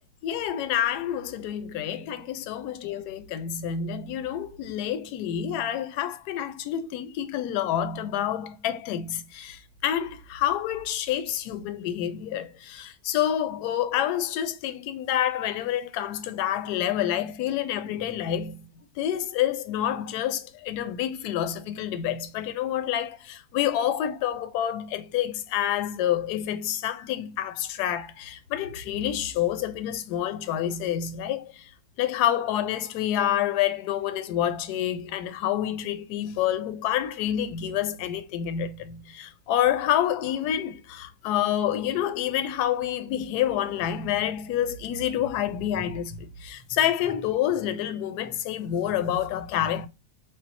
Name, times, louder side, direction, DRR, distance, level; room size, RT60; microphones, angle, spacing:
voice 1, 0.2-18.7 19.0-31.7 32.0-49.9, left 10 dB, 75° left, 1.1 m, -28 dB
4.3 x 2.0 x 4.0 m
omnidirectional pair, 1.9 m